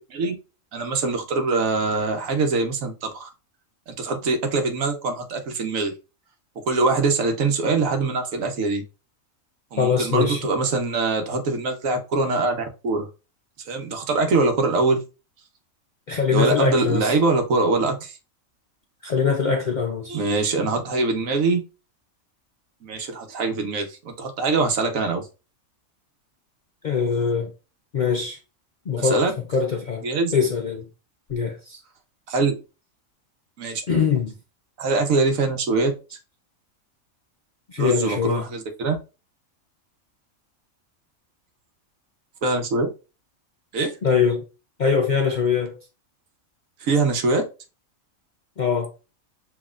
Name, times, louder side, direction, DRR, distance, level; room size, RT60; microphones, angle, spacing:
voice 1, 0.7-3.3 3.9-5.9 6.7-8.8 9.7-13.1 13.7-15.0 16.3-18.2 20.1-21.7 22.8-25.2 29.0-29.3 30.0-30.3 32.3-32.5 33.6-33.8 34.8-35.9 37.8-39.0 42.4-42.9 43.7-43.9 46.8-47.5, right 3 dB, 75° right, 1.3 m, -23 dB
voice 2, 9.8-10.4 16.1-17.1 19.0-20.1 26.8-27.5 27.9-28.4 28.9-29.3 29.5-30.0 30.3-30.8 31.3-31.8 33.9-34.3 37.7-38.4 44.0-44.4 44.8-45.8 48.6-48.9, left 6 dB, 60° left, 0.5 m, -22 dB
7.1 x 2.9 x 2.4 m
omnidirectional pair, 1.4 m